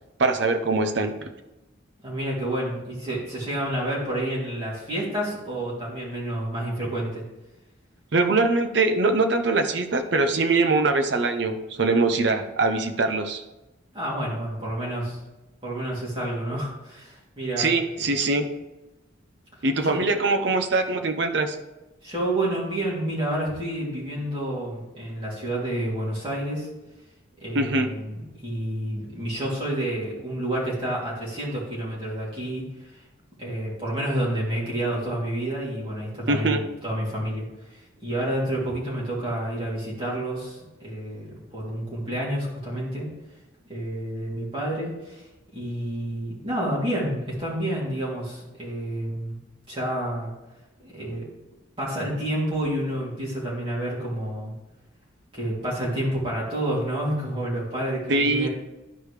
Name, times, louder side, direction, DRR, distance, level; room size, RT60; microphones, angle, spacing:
voice 1, 0.2-1.3 8.1-13.4 17.6-18.5 19.6-21.6 27.5-27.9 36.3-36.6 58.1-58.5, right 3 dB, 60° right, 6 dB, 0.7 m, -22 dB
voice 2, 2.0-7.2 13.9-15.2 15.6-18.2 19.8-20.0 22.0-26.7 27.4-33.0 33.4-43.1 43.6-45.2 45.5-49.3 49.7-50.3 50.8-51.2 51.8-54.5 55.3-58.5, right 1 dB, 25° right, -7 dB, 2.9 m, -29 dB
12.0 x 4.9 x 3.3 m, 1.0 s
head